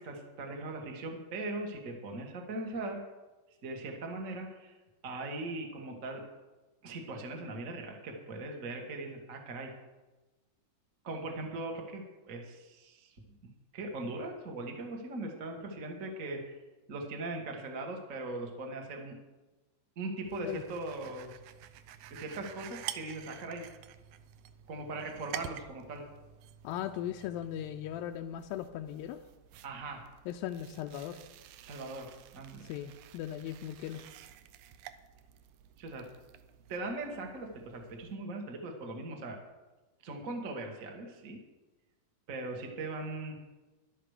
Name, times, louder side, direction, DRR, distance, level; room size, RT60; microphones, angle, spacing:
voice 1, 0.0-3.0 3.6-4.7 5.0-6.2 6.8-9.7 11.0-13.2 13.7-16.5 16.9-19.1 19.9-21.4 22.1-23.6 24.7-26.0 29.6-30.0 31.6-32.6 35.8-36.0 36.7-39.4 40.0-41.4 42.3-43.3, right 2 dB, 35° right, 2 dB, 1.3 m, -40 dB
sound 1, 20.2-38.1, right 11 dB, 80° right, 1.8 m, -49 dB
voice 2, 26.6-29.2 30.3-31.2 32.6-34.1, left 11 dB, 85° left, 5 dB, 2.3 m, -38 dB
13.0 x 11.5 x 4.9 m, 1.1 s
omnidirectional pair, 4.1 m